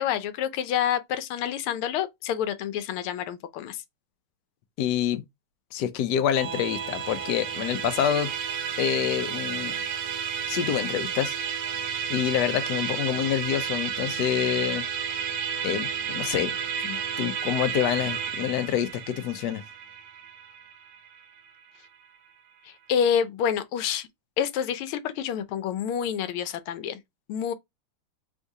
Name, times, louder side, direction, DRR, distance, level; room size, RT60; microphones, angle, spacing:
voice 1, 0.0-3.8 22.6-24.1 24.4-27.0 27.3-27.5, left 8 dB, 85° left, 1.5 m, -28 dB
voice 2, 4.8-5.2 5.7-8.3 8.8-9.7 10.5-11.4 12.1-15.2 15.6-16.5 16.8-19.6, left 10 dB, 70° left, 1.0 m, -27 dB
Musical instrument, 6.3-21.9, right 7 dB, 65° right, 1.3 m, -32 dB
3.6 x 2.7 x 4.7 m
omnidirectional pair, 2.3 m